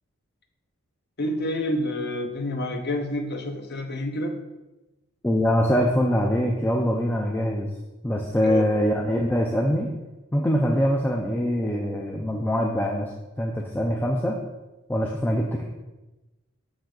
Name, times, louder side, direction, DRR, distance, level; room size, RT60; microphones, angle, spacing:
voice 1, 1.2-4.4 8.4-8.6, left 1 dB, 45° left, 4 dB, 0.7 m, -28 dB
voice 2, 5.2-7.7 8.0-9.9 10.3-14.4 14.9-15.6, equal, 10° left, 1 dB, 0.3 m, -23 dB
6.2 x 5.0 x 3.8 m, 1.1 s
head